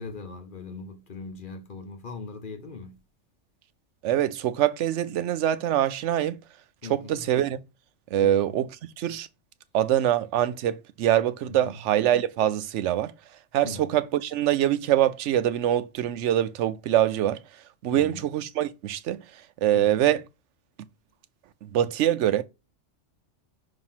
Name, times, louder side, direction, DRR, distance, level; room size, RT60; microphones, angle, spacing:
voice 1, 0.0-3.0 6.8-7.3 8.2-8.5 11.5-11.8 13.6-13.9 17.9-18.3 19.7-20.0, left 3 dB, 45° left, 1.0 m, -40 dB
voice 2, 4.0-6.4 6.9-7.6 8.1-9.3 9.7-13.1 13.5-17.4 17.8-19.2 19.6-20.2 21.6-22.4, right 12 dB, 70° right, 0.9 m, -24 dB
5.8 x 2.9 x 5.6 m
omnidirectional pair, 1.3 m